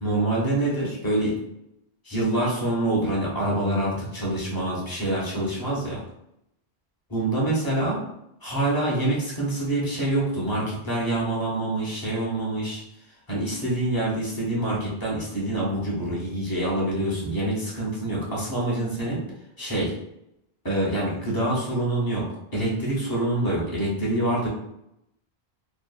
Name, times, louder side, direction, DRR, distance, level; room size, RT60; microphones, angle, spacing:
voice 1, 0.0-1.4 2.0-6.0 7.1-8.0 8.4-12.8 13.3-19.2 19.6-19.9 20.6-22.2 22.5-24.5, right 1 dB, 25° left, -4 dB, 0.7 m, -26 dB
2.8 x 2.3 x 2.3 m, 0.82 s
omnidirectional pair, 1.0 m